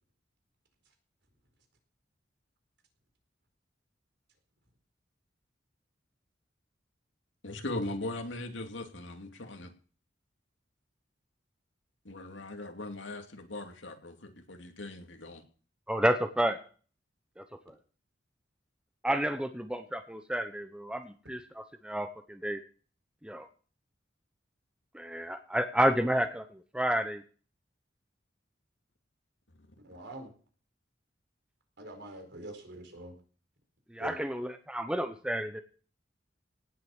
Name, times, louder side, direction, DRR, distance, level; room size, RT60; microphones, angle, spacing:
voice 1, 7.4-9.7 12.0-15.4 29.6-29.7, left 2 dB, 75° left, 5 dB, 2.6 m, -39 dB
voice 2, 15.9-16.6 17.4-17.7 19.0-22.6 23.2-23.5 24.9-27.2 33.9-35.6, right 1 dB, 5° right, 8 dB, 0.9 m, -31 dB
voice 3, 29.8-30.3 31.8-33.1 34.0-34.2, right 1 dB, 65° right, 5 dB, 4.5 m, -44 dB
18.0 x 7.9 x 7.2 m, 0.41 s
head